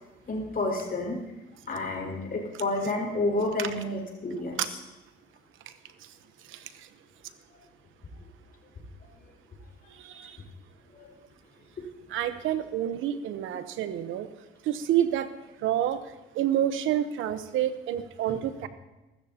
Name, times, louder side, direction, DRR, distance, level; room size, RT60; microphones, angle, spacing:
voice 1, 0.3-1.2 1.7-4.8 10.9-11.1 18.2-18.4, left 2 dB, 45° left, 0 dB, 5.0 m, -30 dB
voice 2, 12.1-14.3 14.7-15.3 15.6-16.0 16.4-18.7, right 11 dB, 90° right, 11 dB, 0.9 m, -28 dB
22.5 x 13.5 x 2.9 m, 1.1 s
cardioid pair, 90°, 20 cm